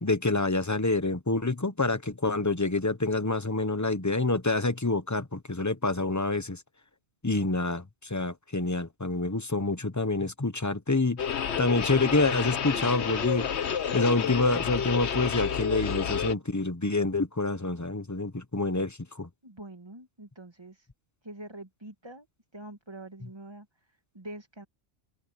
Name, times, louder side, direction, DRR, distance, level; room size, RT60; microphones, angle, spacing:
voice 1, 0.0-6.6 7.2-11.3 11.6-13.5 13.9-19.3, left 2 dB, 15° left, 1.0 m, -27 dB
sound 1, 11.2-16.3, left 7 dB, 70° left, 1.3 m, -30 dB
voice 2, 19.4-20.9 21.2-22.3 22.5-23.7 24.1-24.7, right 1 dB, 25° right, 1.9 m, -45 dB
omnidirectional pair, 1.2 m